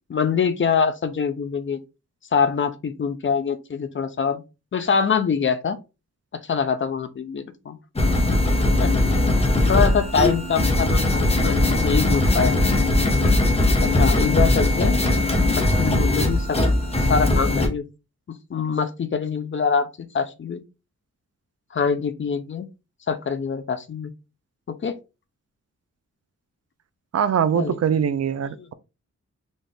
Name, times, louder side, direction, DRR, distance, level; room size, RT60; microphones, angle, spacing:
voice 1, 0.1-1.8 2.3-4.4 4.7-5.8 6.4-7.8 8.5-8.9 9.7-12.8 13.8-15.0 15.5-16.6 17.0-17.8 18.5-19.9 20.1-20.6 21.7-22.7 23.1-24.1 24.7-25.0 27.5-27.8 28.5-28.7, left 6 dB, 45° left, 0.5 m, -24 dB
sound 1, 8.0-17.7, left 1 dB, 20° left, 0.8 m, -20 dB
voice 2, 27.1-28.7, right 8 dB, 60° right, 0.4 m, -22 dB
4.1 x 2.4 x 3.4 m
wide cardioid pair, 140°, 29 cm